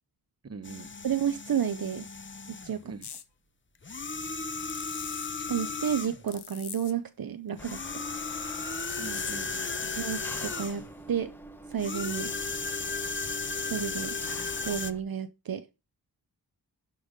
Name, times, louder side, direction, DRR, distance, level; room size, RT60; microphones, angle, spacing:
voice 1, 0.4-0.9 2.8-3.1 9.0-10.0, right 4 dB, 40° right, 0.9 m, -43 dB
sound 1, 0.6-2.8 3.8-6.3 7.6-10.9 11.8-14.9, left 4 dB, 30° left, 0.7 m, -35 dB
voice 2, 1.0-2.1 2.5-2.8 5.5-8.0 10.0-11.3 11.7-12.3 13.7-14.2 14.6-15.7, right 8 dB, 60° right, 0.7 m, -31 dB
sound 2, 3.0-3.3 4.7-5.3 6.3-6.9 8.8-9.6, left 8 dB, 80° left, 0.9 m, -42 dB
Engine, 7.6-15.0, right 1 dB, 5° left, 1.1 m, -47 dB
11.5 x 5.5 x 5.0 m
wide cardioid pair, 100°, 40 cm